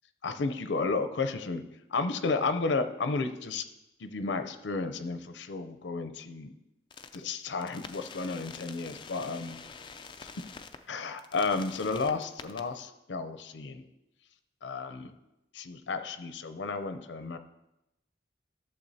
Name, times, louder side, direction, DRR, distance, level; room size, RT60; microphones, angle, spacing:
voice 1, 0.2-1.6 1.9-3.6 4.0-6.5 7.1-9.6 10.2-10.3 10.9-13.8 14.6-15.1 15.5-17.4, left 4 dB, 85° left, 9 dB, 0.5 m, -32 dB
sound 1, 6.9-7.2 7.6-10.8 11.2-12.6, left 5 dB, 25° left, 0.4 m, -46 dB
12.0 x 6.9 x 2.7 m, 0.93 s
head